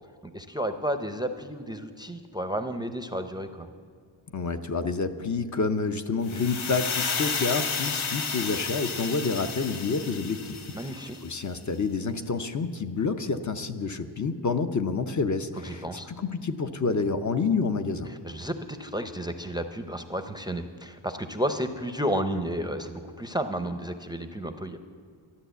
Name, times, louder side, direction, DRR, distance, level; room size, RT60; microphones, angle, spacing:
voice 1, 0.2-3.7 10.7-11.2 15.6-16.1 18.1-24.8, equal, 10° right, 8 dB, 0.6 m, -32 dB
voice 2, 4.3-11.0 11.2-18.1, left 4 dB, 40° left, 8 dB, 0.6 m, -28 dB
sound 1, 6.3-11.3, left 5 dB, 90° left, 1.3 m, -32 dB
12.5 x 10.5 x 8.0 m, 2.1 s
wide cardioid pair, 145°, 47 cm